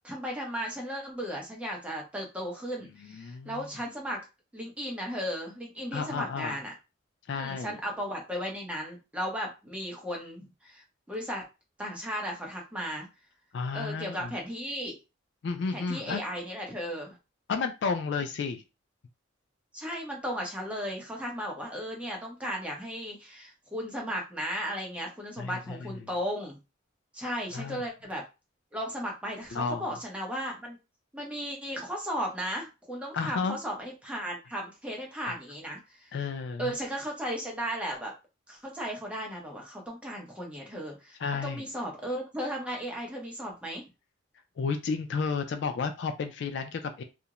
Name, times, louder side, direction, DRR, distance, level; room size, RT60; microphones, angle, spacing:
voice 1, 0.0-4.2 4.5-6.7 7.3-11.5 11.8-13.1 13.7-15.0 15.7-17.2 19.7-26.6 27.1-28.2 28.7-30.8 31.1-36.1 36.6-38.1 38.5-41.2 41.4-43.8, equal, 5° right, -1 dB, 0.7 m, -35 dB
voice 2, 3.1-3.7 5.9-6.6 7.3-7.8 13.5-14.3 15.4-16.2 17.5-18.6 25.4-26.0 27.5-27.8 29.5-29.9 33.1-33.6 35.3-35.4 36.1-36.7 41.2-41.6 44.6-47.0, left 5 dB, 60° left, 7 dB, 0.3 m, -32 dB
2.4 x 2.0 x 2.9 m, 0.27 s
head